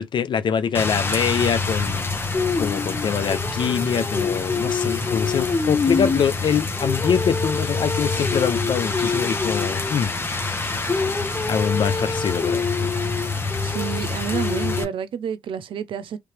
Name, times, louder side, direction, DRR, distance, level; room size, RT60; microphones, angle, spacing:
voice 1, 0.0-2.0 2.6-10.1 11.4-12.9, left 7 dB, 60° left, 0.5 m, -24 dB
Rain, 0.7-14.8, left 4 dB, 25° left, 1.1 m, -25 dB
voice 2, 13.6-16.2, right 7 dB, 70° right, 0.7 m, -29 dB
3.2 x 2.8 x 3.3 m
cardioid pair, 70°, 9 cm